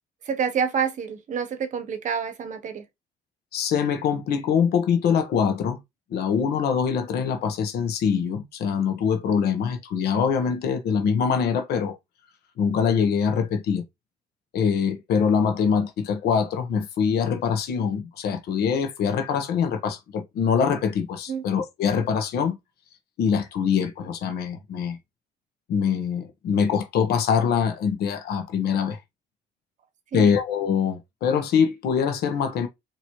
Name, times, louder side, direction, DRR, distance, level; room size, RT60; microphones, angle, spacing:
voice 1, 0.3-2.8 21.3-21.4 30.1-30.4, right 7 dB, 50° right, 1.0 m, -28 dB
voice 2, 3.5-5.8 6.1-11.9 12.6-13.8 14.5-22.6 23.2-25.0 25.7-29.0 30.1-32.7, left 6 dB, 70° left, 1.1 m, -24 dB
4.4 x 3.1 x 3.0 m
cardioid pair, 110°, 17 cm